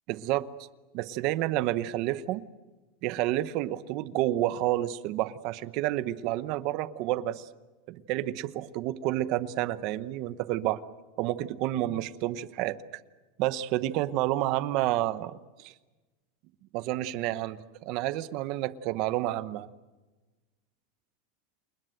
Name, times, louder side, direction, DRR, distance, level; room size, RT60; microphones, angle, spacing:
voice 1, 0.1-0.5 0.9-2.4 3.0-7.5 7.9-10.8 11.2-12.8 13.4-15.7 16.7-19.7, right 15 dB, 35° right, 15 dB, 0.9 m, -30 dB
28.5 x 20.5 x 7.9 m, 1.2 s
supercardioid pair, 180°, 0 cm